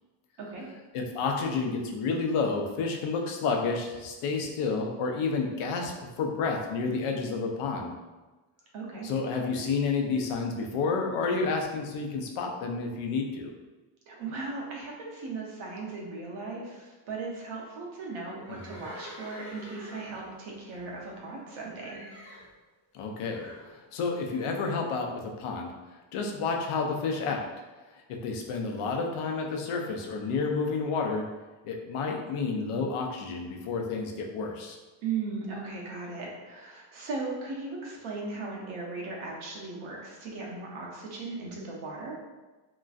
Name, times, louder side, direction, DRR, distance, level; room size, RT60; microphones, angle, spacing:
voice 1, 0.9-7.9 9.0-13.5 18.5-18.8 22.9-25.7 26.1-27.4 27.9-31.2 31.6-34.8, left 4 dB, 90° left, 2 dB, 0.6 m, -30 dB
voice 2, 8.7-9.1 14.1-22.0 35.0-42.2, right 3 dB, 75° right, -2 dB, 0.9 m, -37 dB
Livestock farm animals working animals, 18.4-21.5 21.8-22.5 23.3-23.7, equal, 35° left, 0.9 m, -47 dB
2.9 x 2.5 x 2.4 m, 1.2 s
cardioid pair, 175°, 49 cm